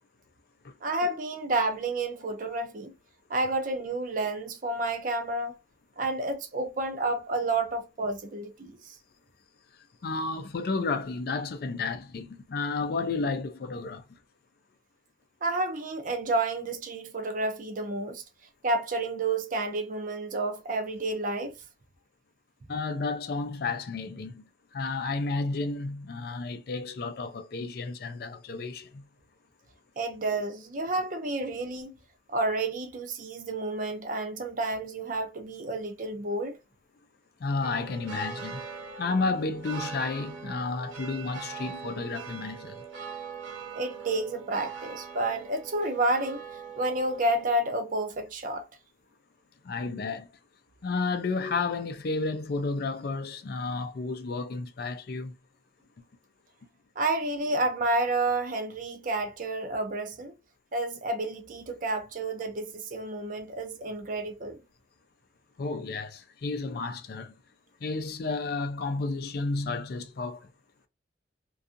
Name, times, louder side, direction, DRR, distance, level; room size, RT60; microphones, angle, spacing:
voice 1, 0.8-2.9 3.3-5.6 6.0-9.0 15.4-18.2 18.6-21.6 30.0-31.9 32.3-36.6 43.7-46.4 46.8-48.7 57.0-60.3 60.7-64.6, right 2 dB, 45° right, 0.5 m, -30 dB
voice 2, 10.0-14.2 22.7-24.4 24.7-29.1 37.4-38.7 39.0-42.8 49.6-50.3 50.8-55.3 65.6-67.3 67.8-70.5, left 3 dB, 55° left, 0.4 m, -32 dB
sound 1, 37.6-47.6, right 5 dB, 75° right, 0.9 m, -41 dB
2.6 x 2.3 x 2.5 m
head